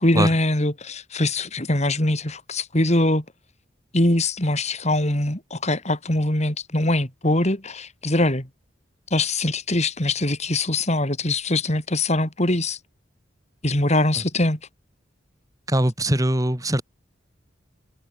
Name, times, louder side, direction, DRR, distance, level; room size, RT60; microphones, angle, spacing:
voice 1, 0.0-3.2 3.9-8.5 9.1-12.8 13.6-14.6, left 1 dB, 35° left, 4.4 m, -22 dB
voice 2, 15.7-16.8, right 1 dB, 20° right, 2.8 m, -21 dB
head